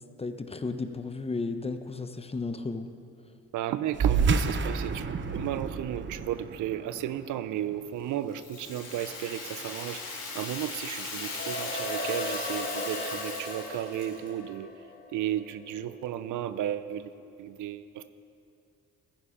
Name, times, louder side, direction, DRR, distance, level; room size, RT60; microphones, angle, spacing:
voice 1, 0.2-2.9, left 3 dB, 20° left, 9 dB, 0.8 m, -34 dB
voice 2, 3.5-5.1 5.3-10.0 10.3-14.7 15.1-17.1 17.4-18.1, right 11 dB, 80° right, 13 dB, 0.6 m, -34 dB
sound 1, 3.9-8.8, right 5 dB, 40° right, 0.8 m, -30 dB
Rattle (instrument), 8.3-14.3, left 4 dB, 55° left, 3.6 m, -38 dB
sound 2, 11.2-15.8, left 1 dB, 35° left, 3.3 m, -36 dB
15.0 x 9.9 x 5.0 m, 2.5 s
cardioid pair, 90°, 30 cm